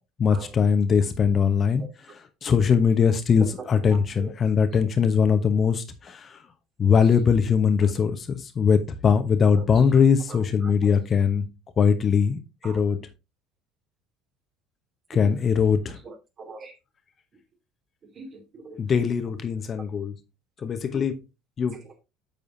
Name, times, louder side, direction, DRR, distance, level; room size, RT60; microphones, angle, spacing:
voice 1, 0.2-1.8 2.4-5.8 6.8-8.2 8.6-11.4 11.8-12.4 12.6-13.0 15.1-16.0 18.8-20.1 20.6-21.2 21.6-21.7, left 6 dB, 35° left, 1.1 m, -21 dB
voice 2, 3.4-4.3 4.7-4.8 9.5-9.7 9.9-10.0 10.3-11.0 12.6-12.8 15.1-15.3 16.0-16.7 18.0-18.8 21.7-21.9, right 4 dB, 40° right, 2.7 m, -42 dB
8.6 x 6.9 x 2.7 m
figure-of-eight pair, 60°, 0 cm